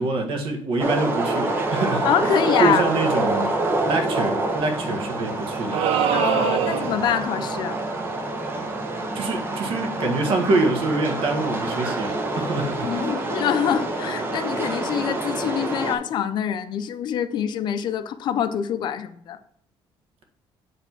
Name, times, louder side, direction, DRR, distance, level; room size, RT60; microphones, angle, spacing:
voice 1, 0.0-3.5 3.8-5.8 9.1-13.1, right 2 dB, 65° right, 3 dB, 1.6 m, -25 dB
sound 1, 0.8-16.0, right 2 dB, 25° right, 0.9 m, -27 dB
voice 2, 2.0-2.9 6.1-7.8 12.8-19.4, left 9 dB, 50° left, 11 dB, 0.5 m, -25 dB
sound 2, 5.7-7.1, right 8 dB, 85° right, 0.7 m, -23 dB
8.2 x 3.3 x 5.9 m, 0.68 s
cardioid pair, 160°, 9 cm